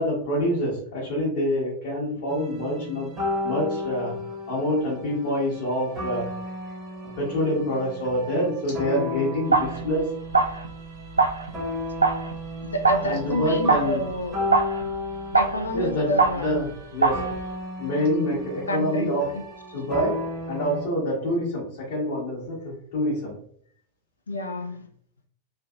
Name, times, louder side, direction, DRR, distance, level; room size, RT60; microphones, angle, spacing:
voice 1, 0.0-3.1 3.4-4.2 4.5-6.3 7.2-10.1 13.0-14.1 15.7-17.2 17.8-19.3 19.7-23.4, equal, 55° left, -6 dB, 1.1 m, -26 dB
sound 1, 2.3-20.9, left 1 dB, 20° right, 1.1 m, -34 dB
sound 2, 9.5-9.9 10.2-16.7 17.0-17.5, right 3 dB, 80° right, 0.3 m, -25 dB
voice 2, 12.6-14.4 15.4-16.6 18.7-19.4 24.3-24.9, equal, 75° left, 5 dB, 0.4 m, -28 dB
3.2 x 2.5 x 2.4 m, 0.62 s
figure-of-eight pair, 90°, 0 cm